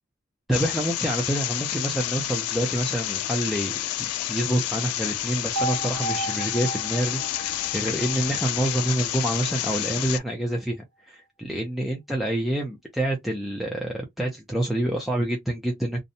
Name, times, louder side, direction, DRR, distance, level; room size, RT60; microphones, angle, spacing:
sound 1, 0.5-10.2, left 12 dB, 85° left, 0.3 m, -29 dB
voice 1, 0.5-3.7 4.0-16.0, right 1 dB, ahead, 0.4 m, -27 dB
sound 2, 5.6-9.5, right 2 dB, 80° right, 0.6 m, -34 dB
2.6 x 2.1 x 2.6 m
head